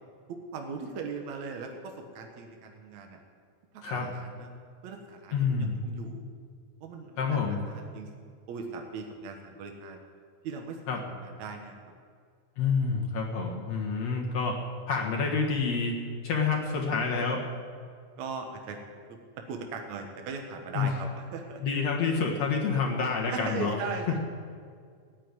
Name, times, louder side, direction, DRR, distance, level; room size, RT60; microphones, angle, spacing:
voice 1, 0.3-3.2 3.7-4.5 4.8-6.2 6.8-8.1 8.5-10.0 10.4-11.8 18.2-19.2 19.5-21.6 23.3-24.2, right 4 dB, 65° right, 3 dB, 2.5 m, -39 dB
voice 2, 5.3-5.7 7.2-7.6 10.9-11.0 12.6-14.6 14.9-15.9 16.2-17.4 20.7-20.9 21.6-23.8, left 5 dB, 60° left, 0 dB, 2.5 m, -28 dB
15.5 x 9.0 x 9.7 m, 2.1 s
omnidirectional pair, 3.6 m